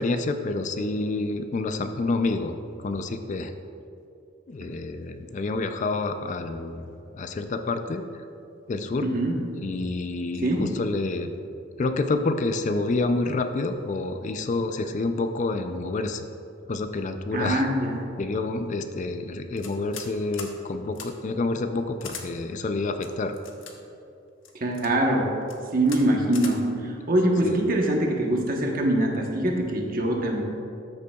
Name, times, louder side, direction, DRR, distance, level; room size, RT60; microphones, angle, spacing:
voice 1, 0.0-3.5 4.5-6.9 7.1-8.1 8.7-9.1 9.6-11.3 11.8-16.3 16.7-17.7 18.2-23.4 27.4-27.6, left 3 dB, 40° left, 8 dB, 0.4 m, -28 dB
voice 2, 9.0-9.4 10.4-10.7 17.3-18.1 24.5-25.3 25.7-30.4, right 1 dB, 45° right, 1 dB, 1.0 m, -23 dB
sound 1, 19.6-20.1 20.3-20.5 20.9-21.1 22.0-22.3 23.0-23.7 24.4-24.9 25.4-25.6 25.9-26.0 26.3-26.5, left 6 dB, 85° left, 0.9 m, -39 dB
13.5 x 6.7 x 2.3 m, 2.6 s
head